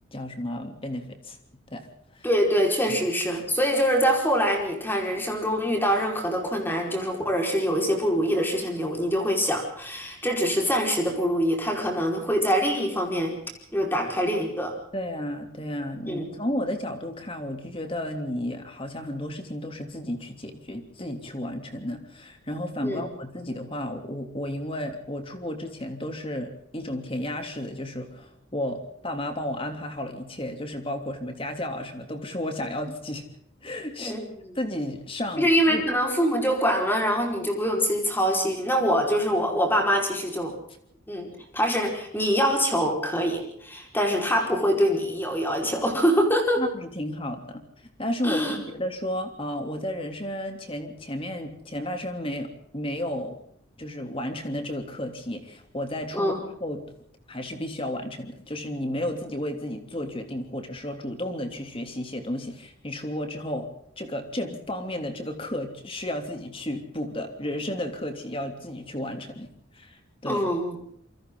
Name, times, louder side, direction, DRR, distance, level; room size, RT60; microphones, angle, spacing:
voice 1, 0.1-1.4 1.7-1.9 2.1-2.3 2.9-3.0 14.9-33.3 33.6-34.2 34.5-35.8 46.6-47.6 48.0-53.4 53.8-56.3 56.6-56.8 57.3-63.7 64.0-69.5 69.7-70.4, left 1 dB, 25° left, 5 dB, 3.1 m, -33 dB
voice 2, 2.2-13.3 13.7-14.7 16.1-16.2 22.8-23.0 34.0-34.5 35.4-40.5 41.1-46.6 48.2-48.6 56.1-56.4 70.2-70.8, equal, 10° left, 1 dB, 4.9 m, -24 dB
27.5 x 24.0 x 3.9 m, 0.70 s
head